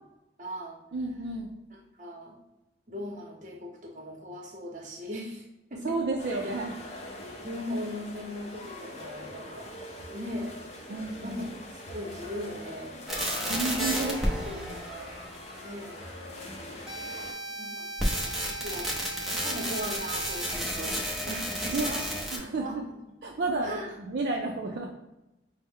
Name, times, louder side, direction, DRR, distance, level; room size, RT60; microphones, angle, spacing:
voice 1, 0.4-0.8 1.7-2.3 2.9-6.0 6.3-6.5 7.4-9.7 10.1-10.6 11.1-12.9 13.8-14.0 14.5-15.2 15.6-16.0 17.4-18.9 19.3-22.3 22.6-22.8 23.4-23.9, equal, 40° right, 1 dB, 0.8 m, -39 dB
voice 2, 0.9-1.5 5.8-6.7 10.9-11.4 13.5-14.8 21.7-21.9 22.3-22.8 23.2-24.9, right 3 dB, 60° right, -1 dB, 0.4 m, -31 dB
sound 1, 6.2-17.3, left 1 dB, 35° left, 0.6 m, -43 dB
sound 2, 13.1-16.0 16.9-22.4, equal, ahead, 0.6 m, -32 dB
5.4 x 2.1 x 3.5 m, 0.95 s
head